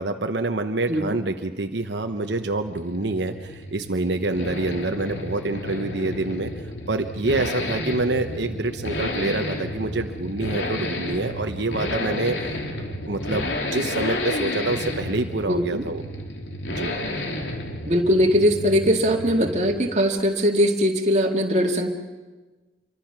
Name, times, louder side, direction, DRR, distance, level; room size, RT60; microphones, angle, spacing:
voice 1, 0.0-6.5 6.9-12.5 13.1-16.0 16.7-16.9, right 2 dB, 80° right, 6 dB, 1.0 m, -26 dB
Accelerating revving vroom, 1.7-19.9 20.2-20.3, left 1 dB, 85° left, 2.9 m, -31 dB
voice 2, 15.5-15.8 17.9-21.9, equal, 40° right, 2 dB, 2.3 m, -20 dB
27.0 x 24.0 x 6.0 m, 1.3 s
head